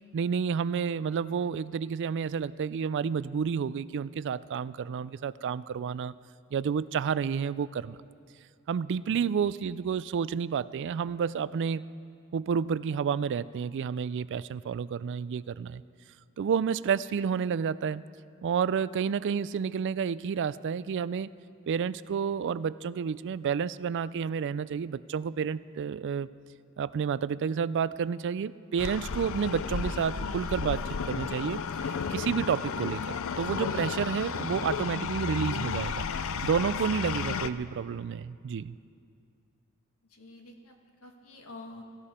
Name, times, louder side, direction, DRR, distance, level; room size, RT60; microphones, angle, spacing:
voice 1, 0.1-6.1 6.5-8.0 8.7-11.8 12.3-15.8 16.4-18.0 18.4-21.3 21.7-26.3 26.8-33.0 33.4-36.1 36.4-38.7, right 6 dB, 55° right, 17 dB, 0.3 m, -30 dB
sound 1, 28.8-37.5, left 6 dB, 65° left, 0.5 m, -33 dB
voice 2, 40.1-41.8, left 2 dB, 85° left, 3 dB, 1.6 m, -48 dB
16.5 x 15.0 x 4.3 m, 2.3 s
head